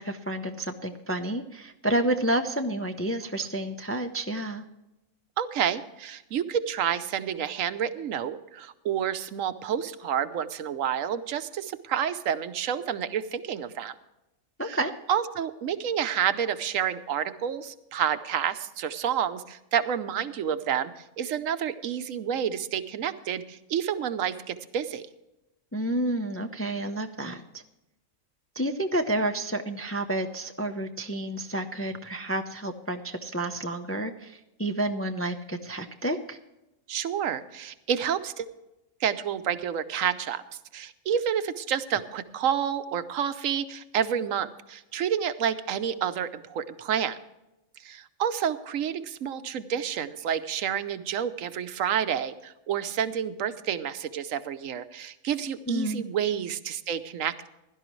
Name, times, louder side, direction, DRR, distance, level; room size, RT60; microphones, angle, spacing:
voice 1, 0.0-4.6 14.6-14.9 25.7-27.6 28.6-36.4 55.7-56.1, right 1 dB, 15° left, 5 dB, 0.4 m, -30 dB
voice 2, 5.4-13.9 14.6-14.8 15.1-25.1 36.9-38.5 39.0-40.4 40.7-47.2 47.8-57.5, right 8 dB, 80° right, 12 dB, 1.1 m, -29 dB
16.5 x 12.0 x 3.1 m, 0.94 s
omnidirectional pair, 1.3 m